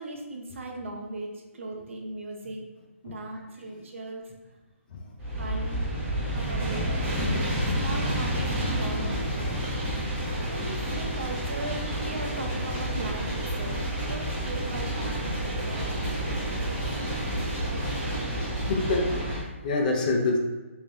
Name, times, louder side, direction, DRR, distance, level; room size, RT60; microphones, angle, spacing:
voice 1, 0.0-2.6 3.0-4.2 5.4-6.0 6.3-9.7 10.5-13.8 14.1-16.8 17.6-18.3, right 2 dB, 65° right, 1 dB, 0.7 m, -38 dB
sound 1, 5.2-19.4, right 1 dB, 20° right, 1.0 m, -29 dB
voice 2, 18.6-20.4, left 3 dB, 35° left, 0 dB, 0.6 m, -27 dB
3.4 x 2.8 x 3.2 m, 1.2 s
hypercardioid pair, 160°, 7 cm